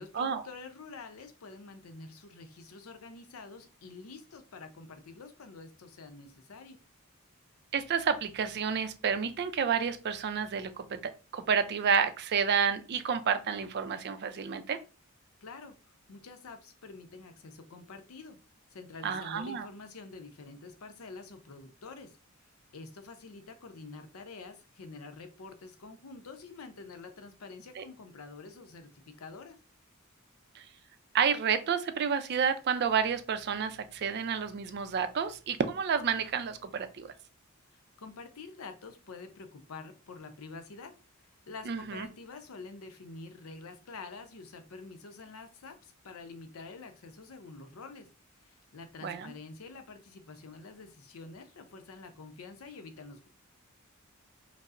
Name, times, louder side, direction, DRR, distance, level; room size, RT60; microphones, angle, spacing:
voice 1, 0.0-6.8 15.4-15.8 16.1-18.4 18.7-22.2 22.7-29.6 37.7-40.9 41.5-48.1 48.4-53.3, left 3 dB, 90° left, 0.6 m, -47 dB
voice 2, 7.7-14.8 19.0-19.7 27.8-27.9 30.6-30.7 31.1-37.1 41.7-42.1 49.0-49.3, right 6 dB, 50° right, 0.4 m, -30 dB
5.1 x 2.0 x 2.4 m
head